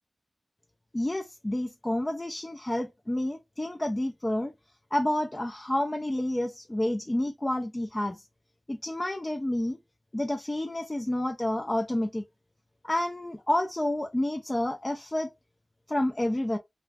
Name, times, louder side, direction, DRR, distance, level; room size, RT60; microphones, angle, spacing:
voice 1, 0.9-4.5 4.9-8.2 8.7-9.8 10.1-12.2 12.8-15.3 15.9-16.6, left 1 dB, 25° left, 0.4 m, -29 dB
2.4 x 2.2 x 3.3 m
wide cardioid pair, 65°, 0 cm